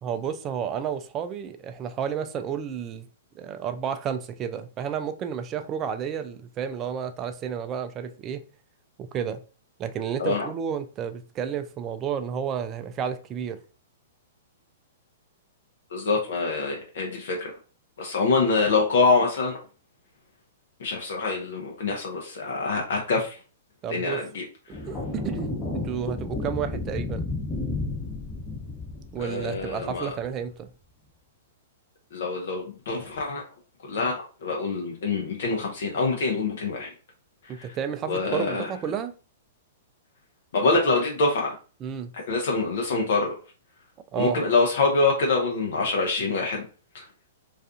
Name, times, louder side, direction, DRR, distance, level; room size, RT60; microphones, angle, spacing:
voice 1, 0.0-3.1 3.4-8.4 9.0-9.4 9.8-13.6 23.8-24.2 24.8-27.2 29.1-30.7 37.5-39.1 41.8-42.1 44.1-44.4, right 8 dB, 30° right, 0.3 m, -31 dB
voice 2, 15.9-17.5 18.0-19.6 20.8-23.4 23.9-24.4 29.2-30.1 32.1-33.4 33.8-36.9 37.4-37.8 38.1-38.7 40.5-41.5 42.3-43.4 44.1-46.6 46.9-47.0, left 3 dB, 65° left, 0.6 m, -25 dB
sound 1, 24.7-30.3, left 3 dB, 25° left, 0.9 m, -32 dB
2.4 x 2.4 x 2.4 m
hypercardioid pair, 120°, 0 cm